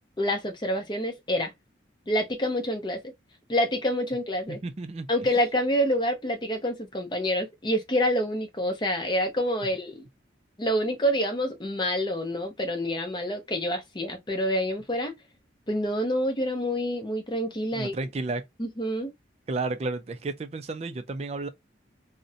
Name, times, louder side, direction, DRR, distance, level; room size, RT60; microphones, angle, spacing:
voice 1, 0.2-1.5 2.1-3.0 3.5-4.6 5.1-10.0 10.6-15.1 15.7-17.9 18.6-19.1, equal, 25° left, 0.6 m, -27 dB
voice 2, 4.5-5.1 17.7-18.4 19.5-21.5, right 3 dB, 35° right, 0.3 m, -32 dB
2.5 x 2.1 x 2.5 m
head